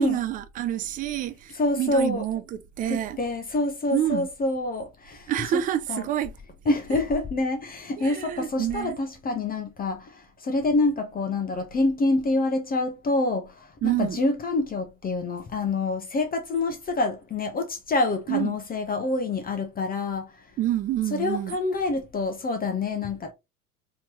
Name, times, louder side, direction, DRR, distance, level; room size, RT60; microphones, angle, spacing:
voice 1, 0.0-3.2 3.9-4.3 5.3-6.3 6.7-7.0 8.0-9.0 13.8-14.2 18.3-18.6 20.6-21.6, right 12 dB, 20° right, 0.3 m, -28 dB
voice 2, 1.5-2.2 2.9-5.3 5.9-6.1 6.7-20.3 21.1-23.3, left 2 dB, 20° left, 0.8 m, -26 dB
4.4 x 3.0 x 2.9 m
figure-of-eight pair, 80°, 44 cm